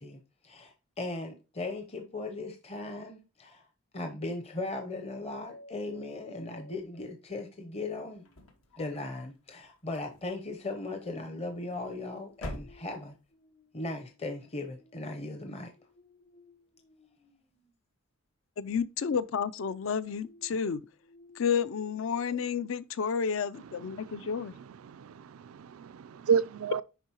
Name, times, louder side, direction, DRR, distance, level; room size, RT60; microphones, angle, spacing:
voice 1, 0.0-3.6 3.9-8.2 8.8-13.2 13.7-15.7, left 2 dB, 30° left, 0.7 m, -38 dB
sound 1, 4.7-8.9 10.3-17.7 19.1-22.5, left 1 dB, 50° left, 1.2 m, -58 dB
sound 2, 8.2-9.4 9.9-10.5 11.5-12.0 12.3-13.3, left 1 dB, 85° left, 1.3 m, -45 dB
voice 2, 18.6-20.8 21.4-24.5, left 6 dB, 65° left, 0.4 m, -31 dB
voice 3, 23.8-26.8, right 6 dB, 80° right, 0.4 m, -32 dB
10.0 x 3.8 x 2.9 m
head